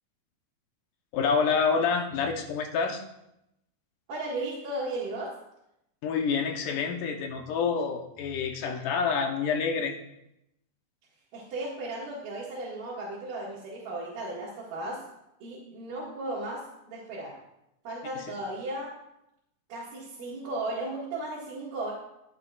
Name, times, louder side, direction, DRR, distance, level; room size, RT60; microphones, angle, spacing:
voice 1, 1.1-3.0 6.0-10.0 18.2-18.3, left 5 dB, 75° left, 4 dB, 2.5 m, -27 dB
voice 2, 4.1-5.3 11.3-15.0 15.4-17.4 17.9-18.9 19.7-21.9, right 2 dB, 75° right, -7 dB, 3.6 m, -35 dB
15.0 x 9.6 x 2.5 m, 0.84 s
omnidirectional pair, 3.9 m